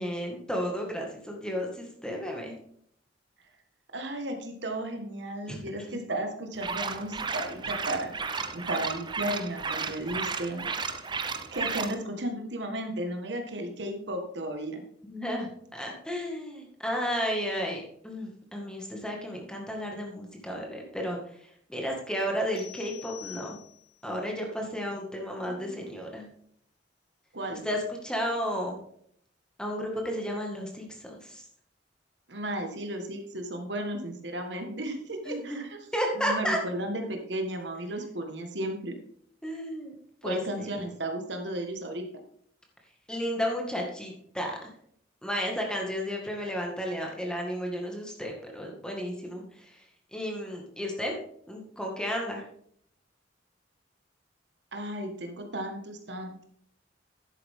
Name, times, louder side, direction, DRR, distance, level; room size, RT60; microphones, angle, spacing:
voice 1, 0.0-2.6 5.5-5.6 5.9-6.0 15.0-23.6 24.0-26.3 27.5-28.8 29.6-31.5 35.3-35.6 35.9-36.6 39.4-39.9 40.2-40.7 43.1-44.7 45.2-49.8 50.1-51.2 51.5-52.4, equal, 5° left, 0 dB, 1.9 m, -33 dB
voice 2, 3.9-8.1 8.5-10.6 11.5-14.8 25.6-25.8 27.3-27.6 32.3-35.8 36.2-39.0 40.2-42.0 54.7-56.4, right 1 dB, 70° right, 4 dB, 1.7 m, -34 dB
sound 1, 6.6-12.0, right 5 dB, 25° right, 0.7 m, -33 dB
sound 2, 22.6-24.1, left 13 dB, 55° left, 2.2 m, -46 dB
11.0 x 8.7 x 3.7 m, 0.65 s
head